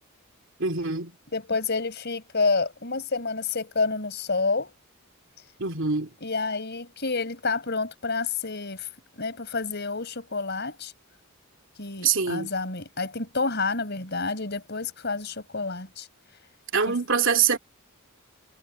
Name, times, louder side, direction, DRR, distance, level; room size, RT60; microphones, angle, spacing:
voice 1, 0.6-1.1 5.6-6.1 12.0-12.5 16.7-17.6, right 6 dB, 65° right, 3.2 m, -24 dB
voice 2, 1.3-4.7 6.2-8.9 9.2-10.9 11.8-16.1 16.9-17.0, left 4 dB, 55° left, 5.6 m, -29 dB
head